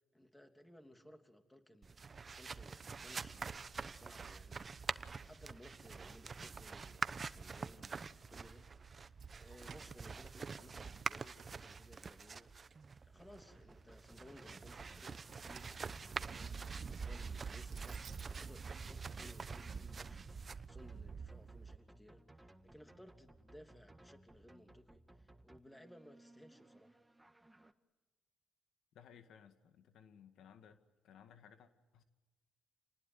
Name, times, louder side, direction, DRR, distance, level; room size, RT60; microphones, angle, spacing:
voice 1, 0.1-27.0, equal, 10° left, 5 dB, 3.0 m, -60 dB
sound 1, 1.8-21.8, right 5 dB, 35° right, 0.9 m, -46 dB
Keys jangling, 9.1-10.9 11.2-12.8 13.3-14.0 14.8-18.4, right 7 dB, 55° right, 1.8 m, -62 dB
sound 2, 13.4-27.7, right 1 dB, 10° right, 1.6 m, -62 dB
voice 2, 28.9-30.8 31.0-32.0, left 8 dB, 75° left, 8 dB, 2.0 m, -60 dB
29.0 x 20.0 x 9.4 m, 1.2 s
cardioid pair, 90°, 0 cm